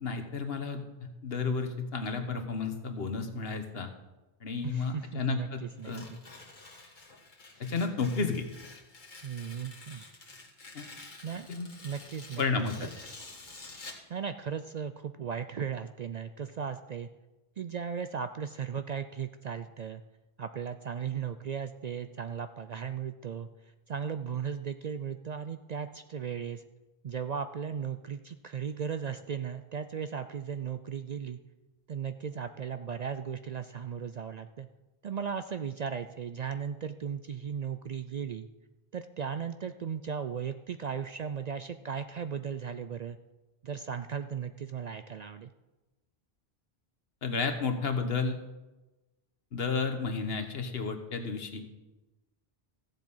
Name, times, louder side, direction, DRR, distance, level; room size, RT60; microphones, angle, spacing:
voice 1, 0.0-3.9 4.4-6.1 7.6-8.5 10.7-10.9 11.5-11.7 12.4-12.9 47.2-48.4 49.5-51.7, left 4 dB, 70° left, 6 dB, 1.4 m, -32 dB
voice 2, 4.6-5.9 9.2-10.0 11.2-11.5 11.8-12.9 14.1-17.1 17.6-20.0 20.4-23.5 23.9-26.6 27.0-31.4 31.9-34.7 35.0-38.5 38.9-43.2 43.6-45.5, right 7 dB, 55° right, 10 dB, 0.5 m, -36 dB
Tearing, 5.8-14.1, left 3 dB, 50° left, 1.9 m, -49 dB
15.0 x 7.4 x 5.5 m, 1.1 s
omnidirectional pair, 1.1 m